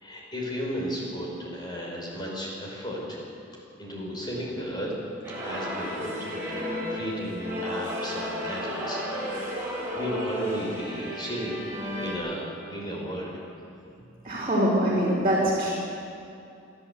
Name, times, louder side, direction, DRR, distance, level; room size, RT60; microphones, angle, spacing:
voice 1, 0.0-3.2 3.8-4.9 5.4-9.6 9.9-13.4, equal, 25° left, -2 dB, 5.5 m, -34 dB
sound 1, 5.2-12.1, equal, 15° right, 7.1 m, -33 dB
voice 2, 14.2-15.7, equal, 30° right, -7 dB, 4.4 m, -23 dB
28.0 x 11.5 x 8.4 m, 2.6 s
head